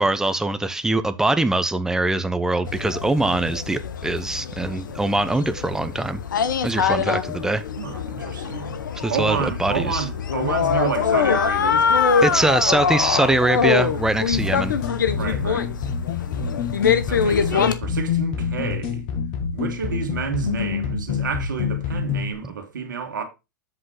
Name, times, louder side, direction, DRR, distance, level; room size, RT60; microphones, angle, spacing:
voice 1, 0.0-6.2 6.6-7.6 9.0-10.0 12.2-14.8, right 2 dB, 5° right, 0.8 m, -22 dB
sound 1, 2.7-17.7, left 6 dB, 85° left, 0.9 m, -24 dB
voice 2, 7.8-8.8 9.1-12.0 12.3-12.6 14.0-14.2 15.2-15.7 17.1-19.1 19.5-23.2, right 7 dB, 85° right, 1.8 m, -30 dB
sound 2, 14.3-22.3, left 7 dB, 50° left, 1.8 m, -27 dB
7.9 x 3.8 x 4.8 m
hypercardioid pair, 110°, 10 cm